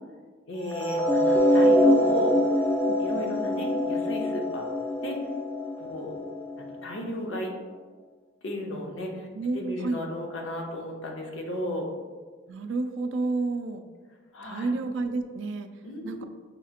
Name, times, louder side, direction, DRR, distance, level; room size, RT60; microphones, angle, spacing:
voice 1, 0.5-2.4 3.0-4.7 5.0-5.2 5.7-6.1 6.6-7.5 8.4-9.3 9.5-11.9 14.3-14.7 15.8-16.2, left 1 dB, 80° left, 1 dB, 0.7 m, -34 dB
sound 1, 0.7-6.9, equal, 10° left, 0.3 m, -24 dB
voice 2, 9.3-10.0 12.5-13.8 14.4-15.7 16.0-16.2, right 3 dB, 70° right, 8 dB, 0.3 m, -30 dB
5.7 x 2.8 x 2.4 m, 1.4 s
head